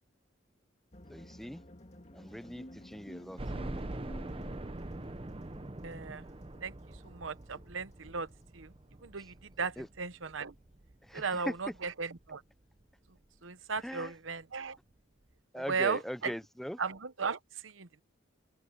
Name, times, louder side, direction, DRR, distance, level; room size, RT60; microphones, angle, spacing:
sound 1, 0.9-9.8, left 1 dB, 35° left, 2.0 m, -54 dB
voice 1, 1.1-1.6 2.1-3.4 3.7-3.9 9.8-9.9 11.0-11.5 13.8-14.1 15.5-16.8, equal, ahead, 0.5 m, -40 dB
sound 2, 3.4-12.3 12.8-12.9 13.2-13.3 14.5-14.6 14.9-15.0, right 1 dB, 30° right, 0.8 m, -44 dB
voice 2, 5.8-6.2 6.6-6.7 7.0-8.3 8.5-8.7 9.0-10.5 11.1-12.4 13.4-14.8 15.6-16.3 16.8-18.0, right 5 dB, 80° right, 1.0 m, -36 dB
head